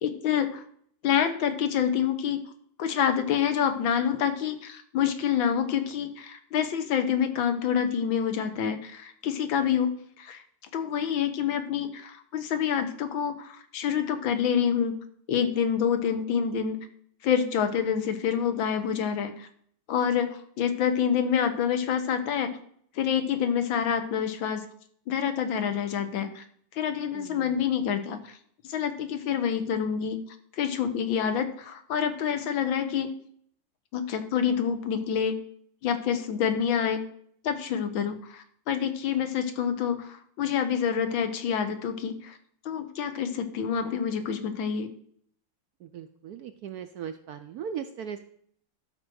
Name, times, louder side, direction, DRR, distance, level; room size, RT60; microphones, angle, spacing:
voice 1, 0.0-0.6 1.0-2.4 2.8-9.9 10.2-10.4 10.7-15.0 15.3-16.8 17.2-19.5 19.9-22.5 23.0-24.6 25.1-26.4 26.7-28.2 28.6-30.2 30.6-33.1 33.9-35.4 35.8-37.0 37.4-42.4 42.7-44.9, left 8 dB, 80° left, 9 dB, 1.7 m, -27 dB
voice 2, 27.1-27.6 45.8-48.2, right 8 dB, 70° right, 8 dB, 0.9 m, -38 dB
12.0 x 4.6 x 6.2 m, 0.63 s
omnidirectional pair, 2.1 m